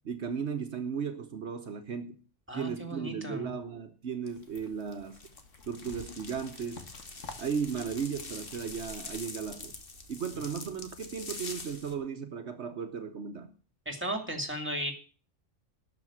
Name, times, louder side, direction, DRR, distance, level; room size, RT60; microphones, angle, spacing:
voice 1, 0.0-2.2 2.5-5.2 5.7-6.8 7.4-9.7 10.1-13.5, right 6 dB, 65° right, 1.3 m, -35 dB
voice 2, 2.5-3.5 13.9-14.9, right 1 dB, 10° right, 2.5 m, -35 dB
sound 1, 4.3-9.5, left 4 dB, 90° left, 2.0 m, -51 dB
sound 2, 5.1-11.9, left 3 dB, 50° left, 1.7 m, -45 dB
12.5 x 5.9 x 8.7 m
omnidirectional pair, 1.3 m